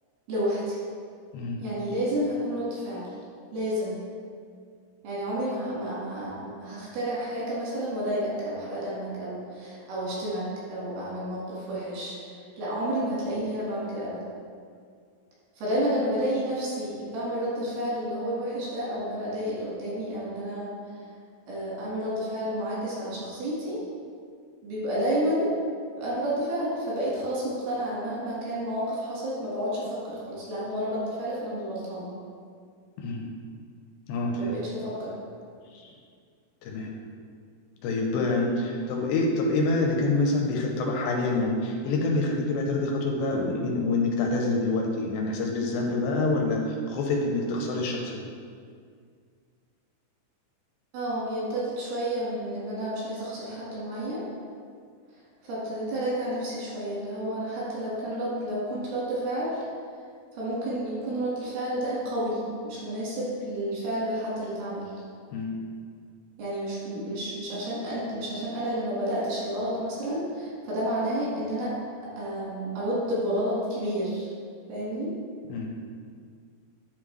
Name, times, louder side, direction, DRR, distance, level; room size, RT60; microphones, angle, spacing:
voice 1, 0.3-0.8 1.6-3.1 3.5-4.0 5.0-12.2 12.6-14.2 15.6-20.7 21.5-23.8 24.6-25.5 26.0-32.1 34.4-35.2 38.4-38.6 50.9-54.2 55.4-59.6 60.3-64.9 66.4-71.8 72.0-74.3 74.7-75.1, equal, 85° right, -7 dB, 3.8 m, -30 dB
voice 2, 34.1-34.6 35.7-35.9 36.6-36.9 37.8-48.3 65.3-65.6 75.5-75.7, left 2 dB, 85° left, 0 dB, 2.4 m, -26 dB
11.0 x 3.7 x 3.2 m, 2.1 s
omnidirectional pair, 4.4 m